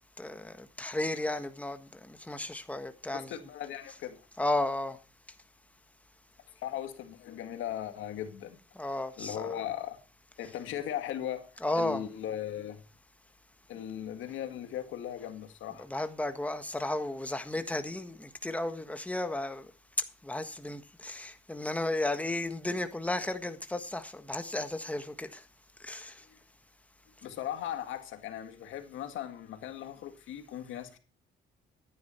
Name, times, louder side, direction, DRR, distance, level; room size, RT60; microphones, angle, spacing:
voice 1, 0.2-3.3 4.4-5.0 8.8-9.6 11.6-12.0 15.9-19.7 20.2-25.4 25.8-26.1, left 2 dB, 5° left, 1.4 m, -34 dB
voice 2, 3.1-4.2 6.6-8.6 9.2-10.0 10.4-12.8 13.7-15.9 26.3-26.4 27.2-31.0, left 10 dB, 85° left, 1.9 m, -38 dB
14.5 x 10.5 x 4.5 m
cardioid pair, 90°, 20 cm